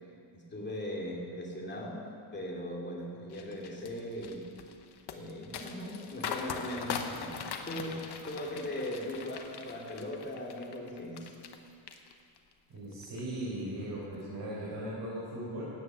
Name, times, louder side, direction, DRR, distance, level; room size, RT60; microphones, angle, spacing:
voice 1, 0.3-2.0 2.3-4.4 5.1-11.3, left 1 dB, 20° left, -3 dB, 2.7 m, -39 dB
sound 1, 3.3-11.6 11.9-12.5 12.9-13.2, left 6 dB, 50° left, 1.2 m, -41 dB
voice 2, 12.7-15.6, right 1 dB, 45° right, -8 dB, 4.6 m, -38 dB
16.5 x 9.3 x 6.8 m, 2.4 s
cardioid pair, 145°, 50 cm